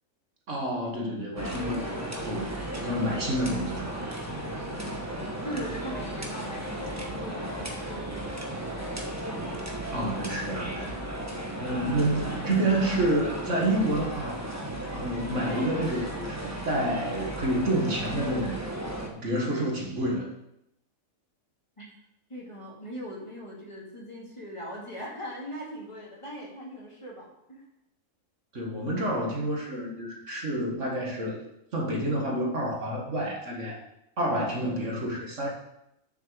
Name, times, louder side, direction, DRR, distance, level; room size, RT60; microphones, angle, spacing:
voice 1, 0.5-2.5 2.8-4.1 9.9-11.0 11.6-14.5 14.9-18.6 19.1-20.3 28.5-31.4 31.7-33.8 34.2-35.5, right 1 dB, 60° right, 0 dB, 2.0 m, -29 dB
sound 1, 1.4-19.1, right 1 dB, 10° right, 1.2 m, -35 dB
voice 2, 5.4-8.4 21.8-21.9 22.3-27.7, equal, 20° left, -4 dB, 2.4 m, -40 dB
7.3 x 6.4 x 6.9 m, 0.83 s
omnidirectional pair, 1.5 m